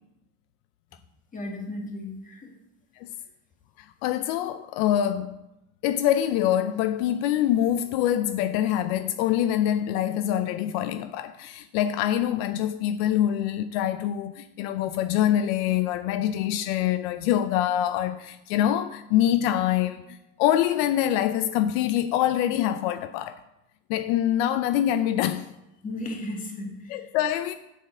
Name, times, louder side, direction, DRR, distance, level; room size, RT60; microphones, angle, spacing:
voice 1, 1.3-2.5 25.8-27.1, left 1 dB, 25° left, 1.7 m, -35 dB
voice 2, 4.0-5.4 5.8-23.4 23.9-25.5 26.9-27.5, left 11 dB, 75° left, 0.5 m, -25 dB
7.4 x 6.8 x 4.8 m
cardioid pair, 135°, 32 cm